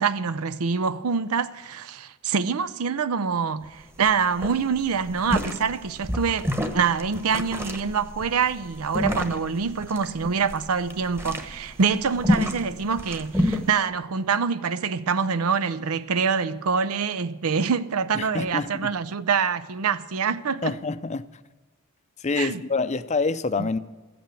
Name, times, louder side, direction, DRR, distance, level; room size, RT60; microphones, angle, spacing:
voice 1, 0.0-6.5 6.7-20.7 22.4-22.6 23.6-23.7, right 6 dB, 85° right, 0.6 m, -25 dB
sound 1, 3.6-3.7 4.0-4.1 4.4-13.7, left 1 dB, 10° right, 1.1 m, -28 dB
voice 2, 18.1-18.9 20.6-21.3 22.2-23.8, left 4 dB, 30° left, 0.5 m, -26 dB
14.5 x 8.7 x 9.0 m
head